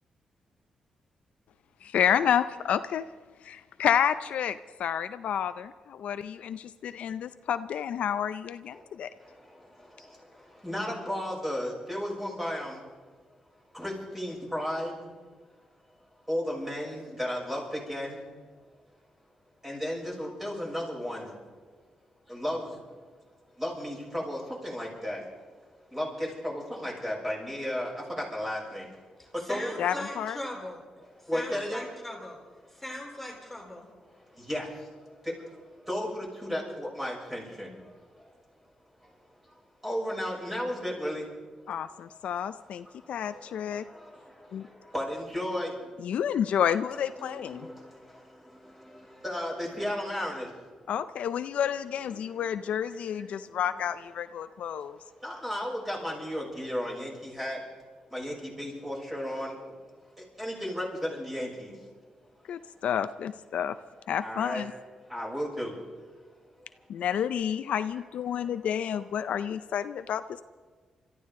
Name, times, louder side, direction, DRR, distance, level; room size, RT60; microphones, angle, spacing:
voice 1, 1.8-3.0 3.4-9.1 29.8-30.4 41.7-43.8 44.5-44.7 46.0-47.7 50.9-55.0 62.5-63.8 64.1-64.7 66.9-70.2, left 9 dB, 80° left, 12 dB, 0.5 m, -30 dB
voice 2, 8.7-12.9 13.7-15.1 16.3-18.3 19.6-21.4 22.3-22.8 23.5-25.3 25.9-28.9 29.2-29.7 31.2-31.9 34.1-38.3 39.0-39.1 39.4-39.5 39.8-41.3 41.7-41.8 42.8-45.9 47.2-50.6 52.1-52.4 52.9-53.6 54.4-57.6 58.1-59.8 60.2-61.8 64.2-64.6 65.1-65.8 66.6-66.7 68.3-68.5, equal, 10° right, -3 dB, 6.8 m, -35 dB
voice 3, 29.4-30.8 31.3-32.4 32.7-33.9, left 1 dB, 5° left, 0 dB, 3.5 m, -39 dB
27.5 x 13.5 x 3.7 m, 1.5 s
cardioid pair, 85°, 2 cm